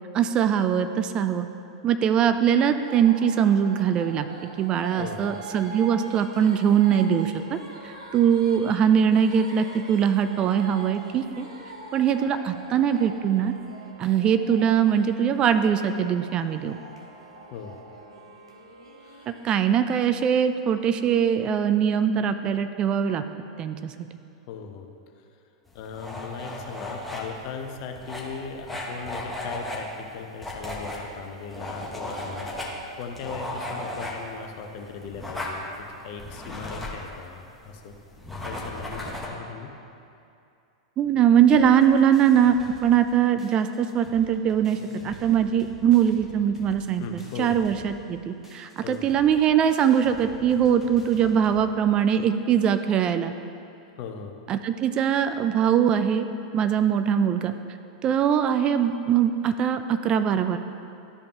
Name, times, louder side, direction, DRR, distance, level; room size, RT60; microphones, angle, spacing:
voice 1, 0.1-1.5 1.8-4.3 4.6-7.6 8.1-11.5 11.9-13.5 14.0-16.8 19.3-23.2 23.6-23.9 41.0-42.6 42.8-44.8 45.0-53.3 54.5-56.3 56.5-57.5 58.0-60.6, right 8 dB, 30° right, 10 dB, 0.4 m, -22 dB
sound 1, 2.7-19.6, right 2 dB, 85° right, 1.2 m, -43 dB
voice 2, 4.9-5.4 17.5-17.8 19.0-19.3 24.5-24.9 25.7-38.0 38.4-39.7 47.0-47.6 48.8-49.0 54.0-54.4, left 6 dB, 50° left, 5 dB, 0.7 m, -38 dB
sound 2, 25.7-39.3, left 1 dB, 5° left, 1.3 m, -36 dB
sound 3, 41.5-43.1 43.4-51.6, equal, 15° right, 1.8 m, -47 dB
12.5 x 5.1 x 2.9 m, 2.6 s
figure-of-eight pair, 95°, 3 cm